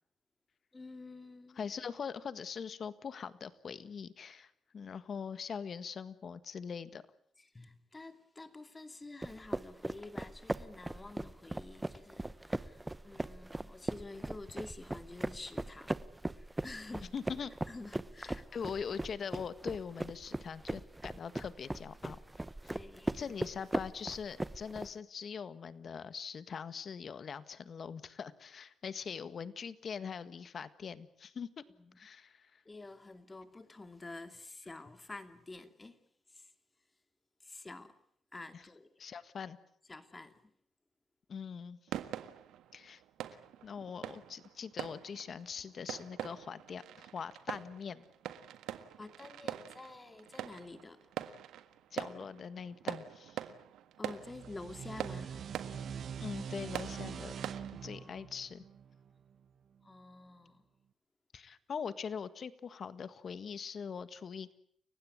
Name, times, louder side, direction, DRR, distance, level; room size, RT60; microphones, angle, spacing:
voice 1, 0.7-1.7 7.4-16.1 16.3-17.1 17.7-18.4 22.7-23.3 31.8-32.0 32.6-36.0 36.3-36.5 37.4-38.0 38.3-38.9 39.9-40.4 49.0-51.1 54.0-55.4 57.8-58.3 59.8-60.6, left 2 dB, 20° left, 2.6 m, -49 dB
voice 2, 1.5-7.0 17.1-17.5 18.5-22.2 22.6-22.8 23.1-31.5 32.0-32.6 38.5-38.6 39.0-39.6 41.3-41.8 42.7-43.0 43.6-48.0 51.9-53.5 56.2-57.3 57.8-58.6 61.3-64.5, left 6 dB, 50° left, 1.6 m, -42 dB
sound 1, 9.2-24.9, right 1 dB, 10° right, 1.0 m, -39 dB
sound 2, 41.9-57.9, right 11 dB, 85° right, 1.6 m, -44 dB
sound 3, 54.1-59.4, right 7 dB, 55° right, 1.3 m, -44 dB
29.5 x 16.0 x 9.6 m
cardioid pair, 90°, 0 cm